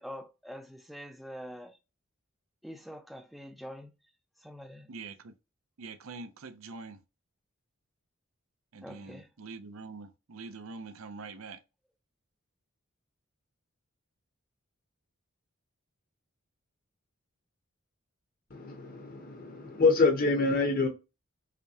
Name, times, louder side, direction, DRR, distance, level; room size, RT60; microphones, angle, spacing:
voice 1, 0.0-1.8 2.6-3.9 4.4-4.9 8.8-9.3, equal, ahead, 0.4 m, -45 dB
voice 2, 4.9-5.3 5.8-7.0 8.7-11.6, right 4 dB, 75° right, 0.5 m, -44 dB
voice 3, 18.5-20.9, left 3 dB, 40° left, 0.8 m, -26 dB
5.0 x 2.2 x 2.7 m
head